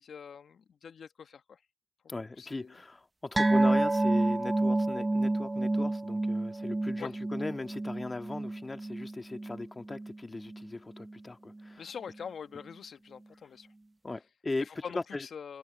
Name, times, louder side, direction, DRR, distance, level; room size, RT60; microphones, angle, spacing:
voice 1, 0.0-1.6 2.0-2.8 7.0-7.1 11.8-13.7 14.6-15.6, left 7 dB, 70° left, 1.3 m, -44 dB
voice 2, 2.1-11.8 14.0-14.7 14.9-15.3, left 2 dB, 35° left, 1.9 m, -38 dB
sound 1, 3.4-10.2 10.4-10.7 11.0-11.1, right 2 dB, 25° right, 0.7 m, -29 dB
supercardioid pair, 45°, 0 cm